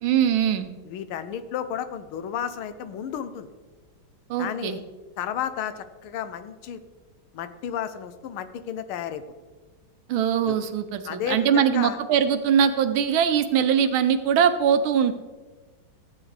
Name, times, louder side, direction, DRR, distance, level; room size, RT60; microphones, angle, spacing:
voice 1, 0.0-0.7 4.3-4.8 10.1-15.1, right 8 dB, 80° right, 10 dB, 1.5 m, -22 dB
voice 2, 0.8-3.5 4.4-4.8 5.2-6.8 7.3-9.2 10.5-10.6 11.0-12.0, left 9 dB, 85° left, 11 dB, 1.6 m, -32 dB
14.5 x 8.7 x 3.3 m, 1.3 s
omnidirectional pair, 2.3 m